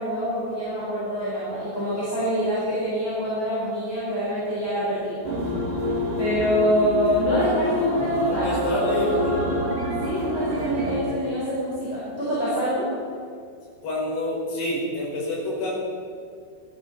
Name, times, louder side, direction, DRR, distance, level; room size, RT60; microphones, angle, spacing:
voice 1, 0.0-5.2 6.2-9.2 9.5-12.9, equal, 5° left, -9 dB, 4.3 m, -26 dB
sound 1, 5.2-11.0, left 2 dB, 35° right, 3.0 m, -27 dB
voice 2, 8.2-9.4 13.8-15.8, left 1 dB, 80° left, -5 dB, 7.1 m, -27 dB
19.0 x 13.0 x 4.8 m, 2.3 s
omnidirectional pair, 4.8 m